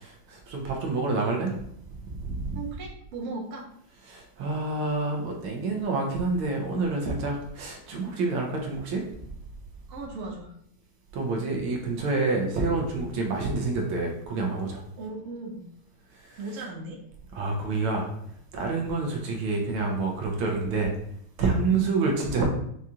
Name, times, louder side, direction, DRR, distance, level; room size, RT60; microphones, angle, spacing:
voice 1, 0.0-1.5 2.1-2.6 4.1-9.1 11.1-14.8 16.3-16.4 17.3-18.1 18.5-20.9 21.4-22.4, right 3 dB, 75° right, 1 dB, 1.6 m, -28 dB
voice 2, 2.5-3.6 9.9-10.5 15.0-15.6 16.4-17.0 21.7-21.9, right 3 dB, 50° right, -3 dB, 1.0 m, -37 dB
6.1 x 2.4 x 2.8 m, 0.71 s
omnidirectional pair, 2.4 m